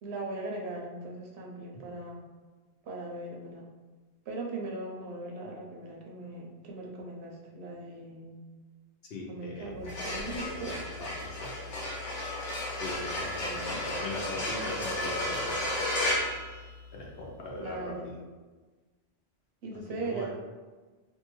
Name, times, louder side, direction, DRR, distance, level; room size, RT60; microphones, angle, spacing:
voice 1, 0.0-2.3 2.8-3.7 4.3-8.4 9.3-10.8 13.2-13.8 17.5-18.1 19.6-20.3, right 2 dB, 70° right, 0 dB, 0.8 m, -39 dB
voice 2, 9.0-9.8 10.2-11.9 12.8-16.3 16.9-18.2 20.0-20.3, left 1 dB, 65° left, -2 dB, 0.8 m, -41 dB
sound 1, 9.7-17.2, left 1 dB, 90° left, 1.1 m, -33 dB
2.6 x 2.3 x 3.0 m, 1.3 s
omnidirectional pair, 1.2 m